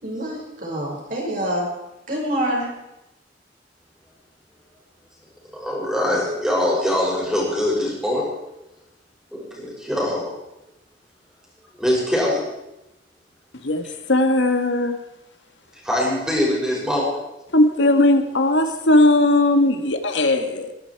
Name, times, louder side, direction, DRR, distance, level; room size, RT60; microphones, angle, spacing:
voice 1, 0.0-1.7 2.1-2.8, right 1 dB, 50° right, -2 dB, 5.5 m, -26 dB
voice 2, 5.5-8.3 9.3-10.3 11.8-12.4 15.8-17.1, left 1 dB, 5° right, -4 dB, 6.3 m, -22 dB
voice 3, 13.6-15.0 17.5-20.7, left 1 dB, 85° left, 7 dB, 1.7 m, -18 dB
23.0 x 11.5 x 4.8 m, 0.91 s
head